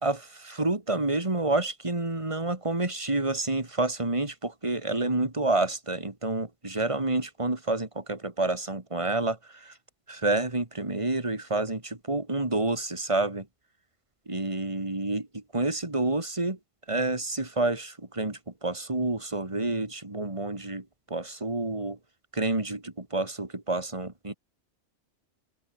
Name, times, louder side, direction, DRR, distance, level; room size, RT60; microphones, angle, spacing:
voice 1, 0.0-9.8 10.1-13.5 14.3-16.6 16.9-22.0 22.3-24.3, right 2 dB, 25° right, 3.0 m, -29 dB
open air
omnidirectional pair, 1.2 m